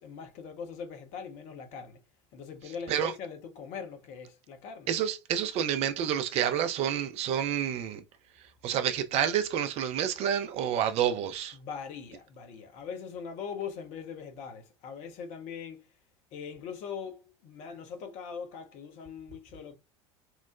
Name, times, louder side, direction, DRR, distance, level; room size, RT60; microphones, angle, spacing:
voice 1, 0.0-2.0 2.3-4.9 11.5-15.9 16.3-19.8, left 6 dB, 50° left, 0.7 m, -41 dB
voice 2, 4.9-8.0 8.6-11.6, right 9 dB, 40° right, 0.4 m, -29 dB
2.9 x 2.0 x 2.4 m
figure-of-eight pair, 70°, 16 cm